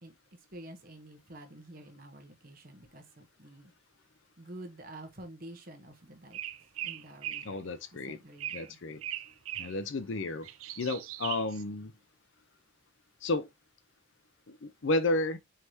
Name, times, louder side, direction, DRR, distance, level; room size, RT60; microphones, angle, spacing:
voice 1, 0.5-3.7 4.4-6.4 6.8-7.7 8.1-8.8, right 1 dB, 40° right, 1.0 m, -49 dB
sound 1, 6.3-7.5 8.4-8.7 9.0-9.8 10.2-11.6, right 12 dB, 85° right, 0.5 m, -39 dB
voice 2, 7.4-8.2 8.5-9.0 9.6-10.5 10.8-11.9 13.2-13.5 14.5-15.4, left 2 dB, 60° left, 0.6 m, -32 dB
4.7 x 3.4 x 2.8 m
head